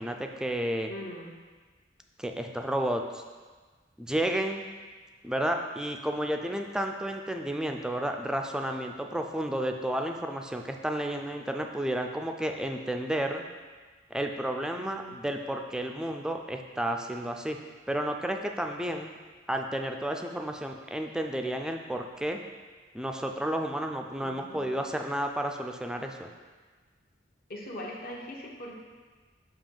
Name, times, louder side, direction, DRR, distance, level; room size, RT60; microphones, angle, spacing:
voice 1, 0.0-0.9 2.2-3.2 4.0-4.7 5.2-13.5 14.1-17.6 17.9-19.2 19.5-22.4 22.9-26.3, right 1 dB, 5° right, 3 dB, 0.3 m, -31 dB
voice 2, 0.9-1.3 14.8-15.2 24.2-24.8 27.5-28.8, left 1 dB, 55° left, -1 dB, 0.9 m, -41 dB
6.9 x 2.9 x 5.4 m, 1.4 s
head